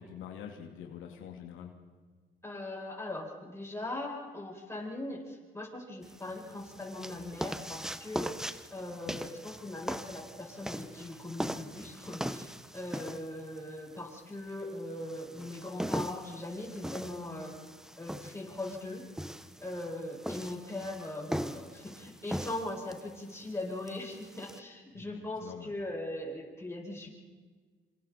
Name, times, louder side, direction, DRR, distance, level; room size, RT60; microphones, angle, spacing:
voice 1, 0.0-1.7 8.9-9.2 24.9-25.7, left 8 dB, 90° left, 2 dB, 2.7 m, -46 dB
voice 2, 2.4-8.3 8.7-17.5 18.0-19.0 19.6-27.1, left 1 dB, 15° left, -2 dB, 7.9 m, -40 dB
sound 1, 6.0-24.6, equal, 5° right, 1.0 m, -40 dB
27.0 x 27.0 x 4.4 m, 1.5 s
cardioid pair, 90°, 20 cm